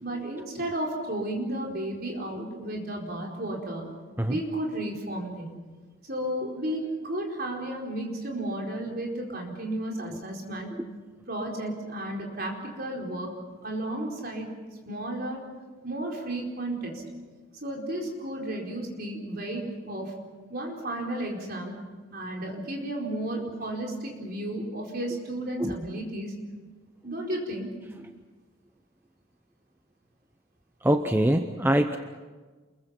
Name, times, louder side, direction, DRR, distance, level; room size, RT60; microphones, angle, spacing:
voice 1, 0.0-3.9 4.3-5.6 6.1-10.7 11.3-13.3 13.6-14.5 14.8-15.4 15.8-17.0 17.6-20.1 20.5-21.7 22.1-26.3 27.0-27.7, right 1 dB, 45° right, 0 dB, 4.7 m, -33 dB
voice 2, 30.8-32.0, right 1 dB, 10° right, 6 dB, 0.7 m, -23 dB
28.5 x 22.5 x 5.9 m, 1.4 s
head